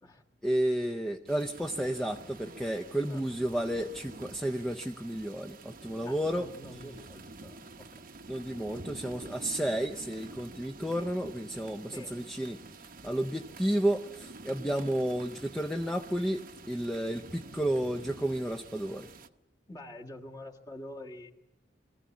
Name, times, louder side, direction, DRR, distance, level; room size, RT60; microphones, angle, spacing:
voice 1, 0.4-6.5 8.3-12.6 13.0-19.1, right 1 dB, 5° left, 4 dB, 0.7 m, -32 dB
sound 1, 1.3-19.3, right 3 dB, 50° right, 0.9 m, -48 dB
voice 2, 6.1-8.0 11.9-12.2 19.7-21.3, left 1 dB, 20° left, 0 dB, 1.8 m, -46 dB
23.5 x 15.5 x 8.5 m, 1.0 s
head